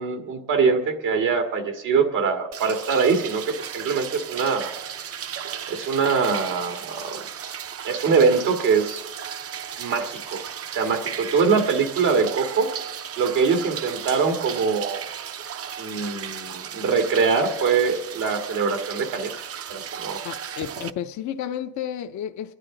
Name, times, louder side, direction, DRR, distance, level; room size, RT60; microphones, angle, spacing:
voice 1, 0.0-4.7 5.7-7.2 7.8-9.0 9.8-12.7 13.2-15.0 15.8-19.4 19.7-20.2, right 5 dB, 85° right, 2.0 m, -23 dB
sound 1, 2.5-20.9, right 8 dB, 50° right, 0.6 m, -35 dB
voice 2, 20.2-22.5, left 10 dB, 70° left, 0.7 m, -32 dB
27.0 x 10.5 x 3.8 m
cardioid pair, 90°, 30 cm